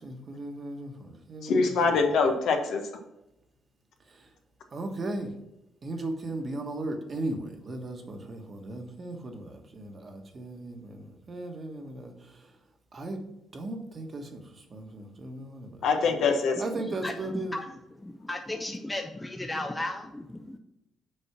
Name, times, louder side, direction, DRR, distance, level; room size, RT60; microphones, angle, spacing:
voice 1, 0.0-1.7 4.1-4.3 4.7-5.3 5.8-12.5 12.9-13.2 13.5-15.9 16.6-17.6, right 2 dB, 40° right, 5 dB, 1.2 m, -37 dB
voice 2, 1.4-2.9 15.8-16.6, left 4 dB, 75° left, 4 dB, 1.2 m, -24 dB
voice 3, 16.7-20.6, left 2 dB, 10° left, 3 dB, 0.6 m, -35 dB
6.6 x 4.3 x 5.9 m, 0.90 s
cardioid pair, 90°, 0 cm